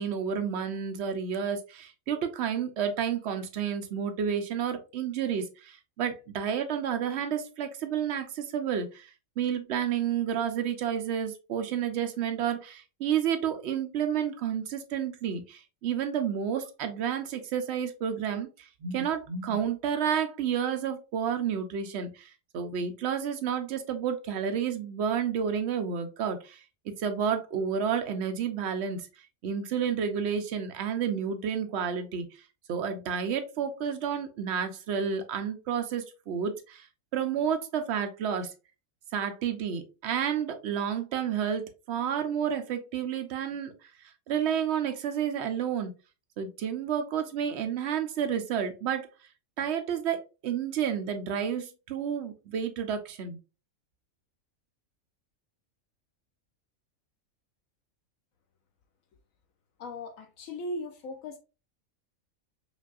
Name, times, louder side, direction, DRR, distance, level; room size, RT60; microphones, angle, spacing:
voice 1, 0.0-26.6 27.0-29.1 29.4-32.3 32.7-36.9 37.1-38.5 39.1-43.7 44.3-45.9 46.4-49.1 49.6-53.4, right 8 dB, 60° right, 0.8 m, -30 dB
voice 2, 59.8-61.4, left 1 dB, 80° left, 1.0 m, -38 dB
5.2 x 2.4 x 2.4 m
omnidirectional pair, 1.4 m